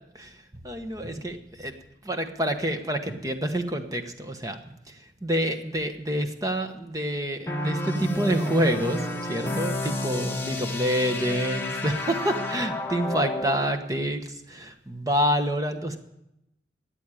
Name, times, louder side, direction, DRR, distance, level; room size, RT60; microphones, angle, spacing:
voice 1, 0.6-1.7 2.0-4.6 4.9-16.0, equal, 20° right, 6 dB, 1.1 m, -27 dB
sound 1, 7.5-13.6, left 1 dB, 15° left, 1.3 m, -30 dB
14.0 x 9.0 x 9.8 m, 0.86 s
head